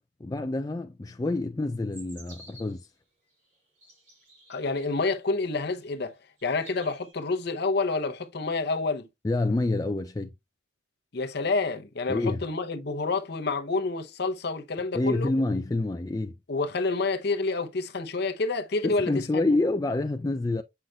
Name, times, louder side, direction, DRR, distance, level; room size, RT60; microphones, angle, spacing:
voice 1, 0.2-2.9 9.2-10.3 12.1-12.4 14.9-16.3 18.8-20.6, left 2 dB, 20° left, 0.3 m, -27 dB
sound 1, 1.9-2.9 3.5-5.1 5.7-6.1 6.4-7.1, right 2 dB, 35° right, 3.5 m, -52 dB
voice 2, 4.5-6.1 6.4-9.1 11.1-15.3 16.5-19.5, left 3 dB, 55° left, 0.7 m, -28 dB
7.8 x 5.6 x 2.3 m
head